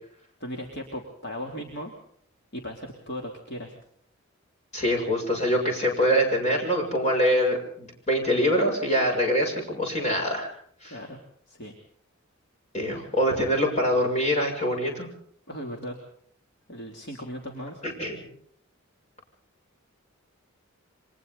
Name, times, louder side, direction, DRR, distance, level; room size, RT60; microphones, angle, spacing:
voice 1, 0.4-1.9 2.5-3.7 10.8-11.2 11.5-11.7 15.5-16.0 16.7-17.8, equal, 50° left, 1 dB, 3.2 m, -37 dB
voice 2, 4.7-10.5 10.8-11.0 12.7-15.1 17.8-18.3, equal, 30° left, 1 dB, 7.4 m, -24 dB
29.0 x 25.0 x 4.1 m, 0.62 s
head